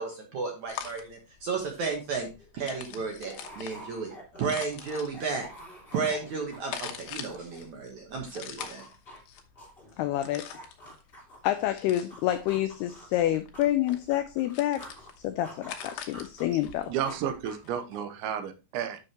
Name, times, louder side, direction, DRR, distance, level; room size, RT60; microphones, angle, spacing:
voice 1, 0.0-2.3 2.5-4.1 4.4-5.5 5.9-8.8, right 4 dB, 65° right, 2 dB, 1.8 m, -33 dB
sound 1, 0.7-17.7, left 9 dB, 70° left, 2.8 m, -45 dB
sound 2, 2.4-7.9 8.2-11.7 12.1-15.1 15.4-18.2, equal, 20° left, 1.7 m, -48 dB
voice 2, 10.0-10.4 11.4-14.8 15.2-16.9, left 13 dB, 90° left, 10 dB, 2.2 m, -28 dB
voice 3, 16.9-19.0, right 9 dB, 85° right, 9 dB, 3.2 m, -32 dB
11.0 x 6.4 x 3.0 m, 0.28 s
omnidirectional pair, 5.3 m